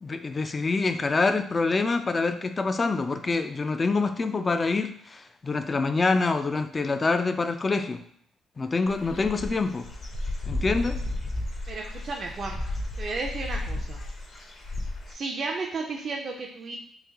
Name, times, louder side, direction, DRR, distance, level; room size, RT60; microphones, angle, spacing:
voice 1, 0.0-8.0 8.6-9.9 10.5-11.0, left 3 dB, 30° left, 8 dB, 0.3 m, -26 dB
Dog / Bird, 8.9-15.1, left 1 dB, 45° left, 0.7 m, -33 dB
voice 2, 11.7-12.6 13.0-14.0 15.1-16.8, right 3 dB, 50° right, 0 dB, 0.5 m, -33 dB
3.2 x 2.5 x 3.4 m, 0.63 s
cardioid pair, 90°, 0 cm